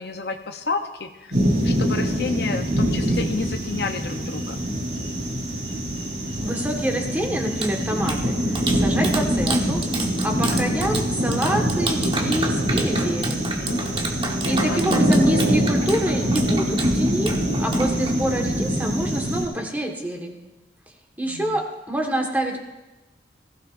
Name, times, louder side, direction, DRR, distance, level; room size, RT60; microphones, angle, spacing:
voice 1, 0.0-4.6 13.6-15.0 21.2-21.6, left 4 dB, 60° left, 6 dB, 0.8 m, -31 dB
sound 1, 1.3-19.4, equal, 75° right, 5.1 m, -24 dB
voice 2, 6.4-9.8 10.2-13.5 14.5-17.3 17.6-20.4 21.2-22.6, right 1 dB, 10° right, 1 dB, 1.5 m, -27 dB
Clapping, 7.6-18.4, right 3 dB, 30° right, 1.2 m, -31 dB
20.0 x 15.5 x 2.6 m, 1.1 s
head